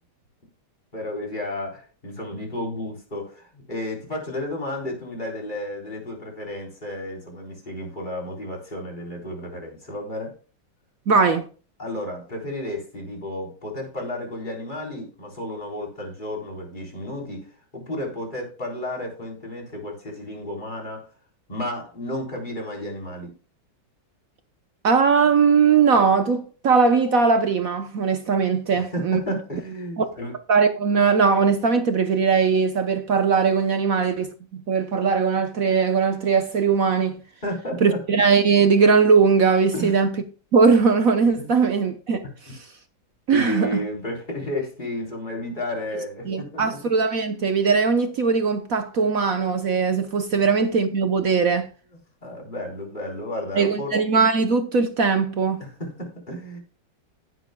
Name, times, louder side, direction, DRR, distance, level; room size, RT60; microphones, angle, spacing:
voice 1, 0.9-10.3 11.8-17.5 17.7-21.1 21.5-23.3 28.7-30.4 37.4-38.0 39.7-40.0 41.4-41.5 43.3-46.8 52.2-53.9 55.6-56.6, left 1 dB, 20° left, 3.9 m, -32 dB
voice 2, 11.1-11.5 24.8-29.4 30.0-30.1 30.5-37.2 37.8-40.1 40.5-42.2 43.3-43.8 46.3-51.7 53.5-55.6, right 5 dB, 55° right, 1.1 m, -20 dB
17.0 x 7.9 x 2.2 m
omnidirectional pair, 2.2 m